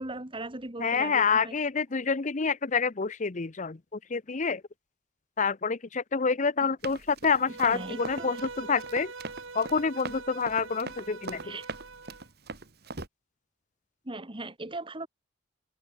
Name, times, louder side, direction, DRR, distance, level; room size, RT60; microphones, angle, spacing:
voice 1, 0.0-1.5 7.6-8.4 11.4-11.7 14.0-15.1, right 2 dB, 25° right, 2.2 m, -38 dB
voice 2, 0.8-4.6 5.4-9.1 9.5-11.6, left 5 dB, 40° left, 0.7 m, -28 dB
Run, 6.8-13.1, right 3 dB, 55° right, 2.6 m, -41 dB
Bowed string instrument, 7.3-12.3, right 4 dB, 85° right, 3.4 m, -43 dB
head